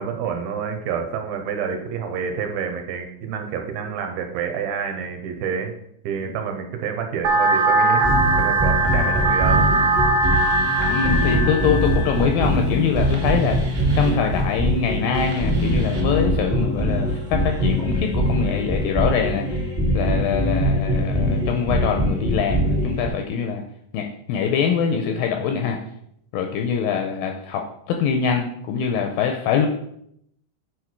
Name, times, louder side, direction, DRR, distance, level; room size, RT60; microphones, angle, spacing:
voice 1, 0.0-5.7 6.0-8.0 8.4-9.7, right 7 dB, 75° right, 5 dB, 2.6 m, -28 dB
sound 1, 7.2-12.2, right 2 dB, 60° right, 2.2 m, -20 dB
sound 2, 7.9-23.1, equal, 25° right, 1.1 m, -23 dB
voice 2, 10.9-13.7 13.9-19.6 19.9-23.6 23.9-25.8 26.3-29.7, left 6 dB, 85° left, 4 dB, 2.1 m, -24 dB
8.8 x 4.6 x 4.5 m, 0.73 s
omnidirectional pair, 4.7 m